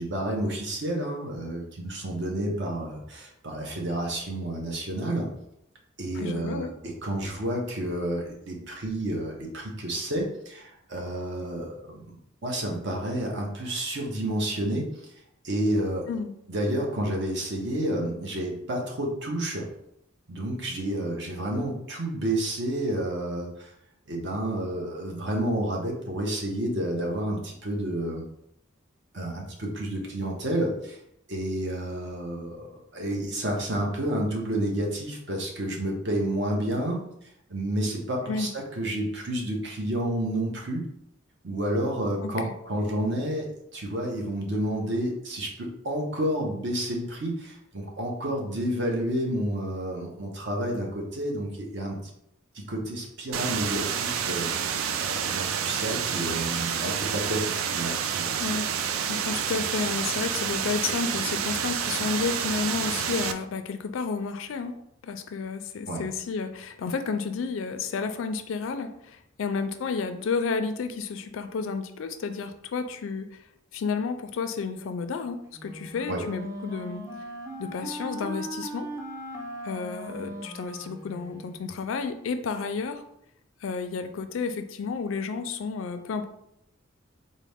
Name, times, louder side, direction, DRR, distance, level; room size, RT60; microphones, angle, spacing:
voice 1, 0.0-5.3 6.0-14.9 15.4-16.1 16.5-19.7 20.3-23.7 24.1-28.2 29.1-31.0 31.3-37.1 37.5-40.8 41.4-52.0 52.5-57.4 57.7-58.3 65.9-66.0 76.1-76.2, right 1 dB, 60° right, 0 dB, 0.8 m, -30 dB
voice 2, 6.1-6.7 16.1-16.3 38.3-38.5 42.2-42.5 58.4-64.7 65.0-73.3 73.7-77.0 77.6-78.9 79.6-83.0 83.6-86.2, left 5 dB, 70° left, 8 dB, 0.4 m, -31 dB
sound 1, 53.3-63.3, right 8 dB, 85° right, 0.3 m, -29 dB
Wind instrument woodwind instrument, 75.5-81.7, right 1 dB, 15° right, 0.5 m, -39 dB
4.0 x 2.1 x 3.4 m, 0.76 s
head